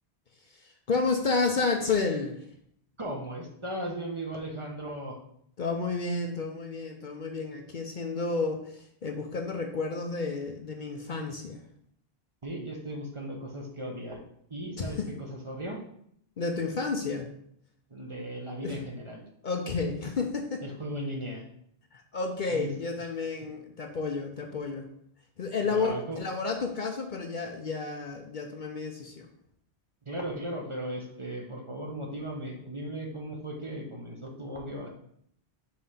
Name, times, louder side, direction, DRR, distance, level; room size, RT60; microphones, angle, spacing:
voice 1, 0.4-2.5 5.6-11.6 14.7-15.1 16.4-17.3 18.6-18.8 19.4-20.6 21.9-24.9 25.4-29.3, left 4 dB, 55° left, 3 dB, 0.7 m, -31 dB
voice 2, 3.0-5.2 12.4-14.2 14.5-15.0 15.3-15.8 17.9-19.2 20.6-21.4 22.5-22.7 25.6-26.2 30.1-34.9, right 1 dB, 30° right, 0 dB, 0.9 m, -37 dB
5.7 x 3.2 x 5.6 m, 0.70 s
omnidirectional pair, 1.1 m